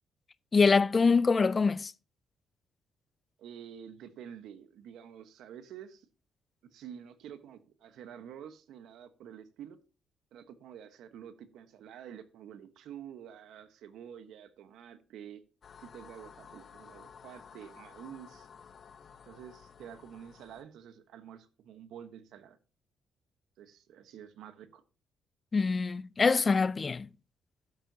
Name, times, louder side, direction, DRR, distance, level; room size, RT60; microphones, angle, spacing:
voice 1, 0.5-1.9 25.5-27.1, left 4 dB, 35° left, 0.4 m, -24 dB
voice 2, 3.4-6.1 6.7-9.8 10.3-15.4 15.8-18.5 19.3-22.6 23.6-24.8, right 9 dB, 80° right, 1.2 m, -48 dB
sound 1, 15.6-20.6, left 6 dB, 50° left, 1.1 m, -53 dB
12.0 x 9.1 x 2.8 m
cardioid pair, 90°, 0 cm